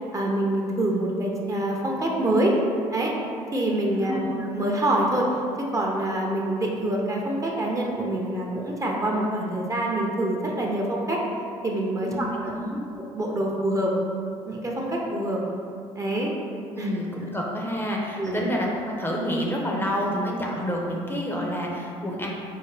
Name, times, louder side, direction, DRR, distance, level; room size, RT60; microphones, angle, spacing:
voice 1, 0.1-2.6 2.9-3.1 3.5-5.3 5.7-11.2 11.6-12.3 13.0-13.9 14.5-15.4 16.0-16.3 16.8-16.9 18.2-18.4, right 1 dB, 25° right, -2 dB, 0.6 m, -26 dB
voice 2, 4.0-4.4 12.1-12.8 16.7-22.3, equal, 15° left, -2 dB, 0.6 m, -28 dB
4.6 x 2.1 x 3.2 m, 2.5 s
supercardioid pair, 70°, 14 cm